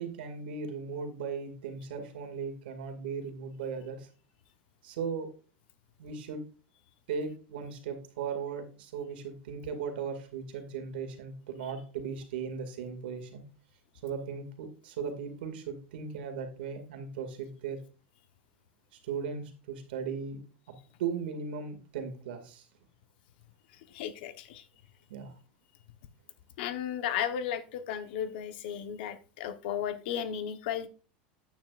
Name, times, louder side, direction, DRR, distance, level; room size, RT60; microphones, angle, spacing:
voice 1, 0.0-4.1 4.8-5.3 6.0-6.4 7.1-13.4 14.0-17.8 19.0-20.4 21.0-22.6 25.1-25.3, right 6 dB, 85° right, 6 dB, 2.1 m, -37 dB
voice 2, 23.9-24.6 26.6-30.9, left 9 dB, 75° left, 10 dB, 1.0 m, -34 dB
9.3 x 9.1 x 2.5 m, 0.36 s
supercardioid pair, 120°, 5 cm